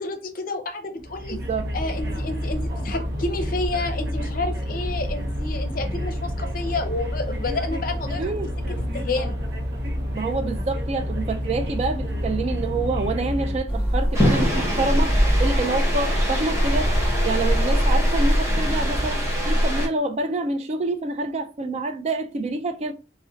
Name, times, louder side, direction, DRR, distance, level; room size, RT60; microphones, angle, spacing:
voice 1, 0.0-1.4 1.7-8.2 8.7-9.4, left 3 dB, 55° left, 0.6 m, -30 dB
sound 1, 1.0-13.6, equal, 70° right, 0.6 m, -28 dB
voice 2, 1.3-1.7 8.2-8.5 10.1-16.9 17.2-22.9, right 3 dB, 35° right, 0.3 m, -27 dB
sound 2, 13.7-19.1, equal, 15° left, 0.9 m, -24 dB
sound 3, 14.1-19.9, equal, 15° right, 0.7 m, -23 dB
2.5 x 2.1 x 3.7 m
head